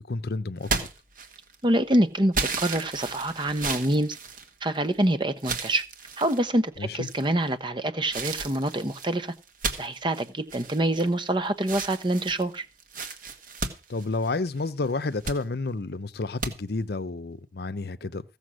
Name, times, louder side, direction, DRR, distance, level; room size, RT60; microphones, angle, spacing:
voice 1, 0.1-0.7 6.8-7.1 13.9-18.2, left 3 dB, 60° left, 0.7 m, -30 dB
sound 1, 0.6-1.6 2.3-5.0 5.4-6.4 7.0-7.5 8.1-11.3 11.6-14.6 15.0-15.4 16.4-16.5, right 4 dB, 50° right, 1.8 m, -33 dB
voice 2, 1.6-4.2 4.6-5.8 6.2-9.3 9.8-12.7, right 1 dB, 25° right, 1.0 m, -26 dB
15.5 x 7.0 x 6.3 m
head